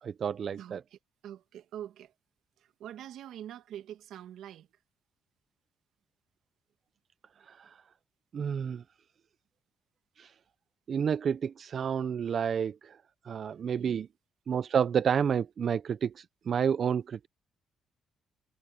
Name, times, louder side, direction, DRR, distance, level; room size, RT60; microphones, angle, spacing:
voice 1, 0.0-0.8 7.5-7.8 8.3-8.8 10.2-10.3 10.9-13.0 13.2-14.1 14.5-17.3, right 7 dB, 55° right, 0.6 m, -30 dB
voice 2, 0.6-2.1 2.8-4.7 13.8-14.0, right 11 dB, 80° right, 2.0 m, -45 dB
cardioid pair, 90°, 0 cm